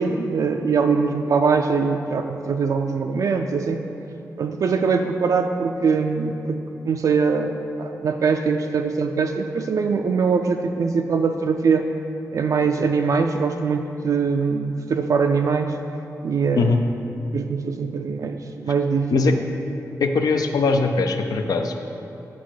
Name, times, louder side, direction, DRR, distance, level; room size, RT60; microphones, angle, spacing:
voice 1, 0.0-3.8 4.4-11.9 12.3-15.8 16.2-16.7 17.3-19.4, right 5 dB, 65° right, 4 dB, 0.4 m, -22 dB
voice 2, 20.0-21.8, left 4 dB, 80° left, 5 dB, 0.6 m, -20 dB
8.4 x 3.9 x 6.3 m, 2.8 s
wide cardioid pair, 100°, 6 cm